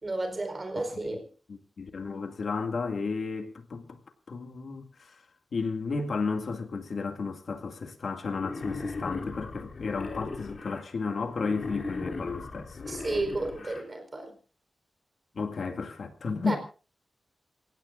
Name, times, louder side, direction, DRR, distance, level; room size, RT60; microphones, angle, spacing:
voice 1, 0.0-1.2 12.9-14.3 16.4-16.6, right 2 dB, 30° right, 4.7 m, -32 dB
voice 2, 1.5-4.0 4.3-5.2 5.5-12.8 15.4-16.5, left 4 dB, 65° left, 2.2 m, -33 dB
Wild animals, 8.3-10.8 11.3-13.8, left 3 dB, 50° left, 4.2 m, -37 dB
28.0 x 17.0 x 2.6 m
wide cardioid pair, 135°, 0 cm